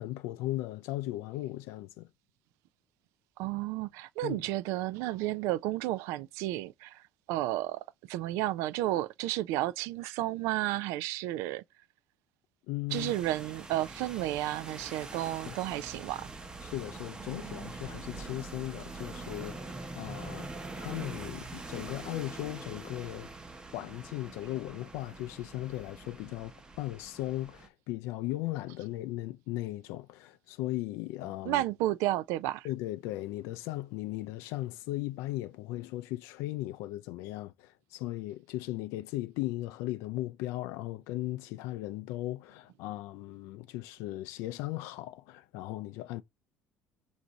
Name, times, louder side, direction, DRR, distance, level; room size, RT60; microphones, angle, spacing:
voice 1, 0.0-2.1 4.2-4.4 12.7-13.1 15.5-15.6 16.6-20.5 20.8-23.3 23.7-31.6 32.6-46.2, left 16 dB, 85° left, 0.4 m, -37 dB
voice 2, 3.4-7.0 7.3-11.6 12.9-16.3 31.5-32.7, right 15 dB, 85° right, 0.4 m, -32 dB
sound 1, 12.9-27.7, right 3 dB, 15° right, 0.7 m, -44 dB
4.6 x 2.6 x 3.9 m
cardioid pair, 125°, 5 cm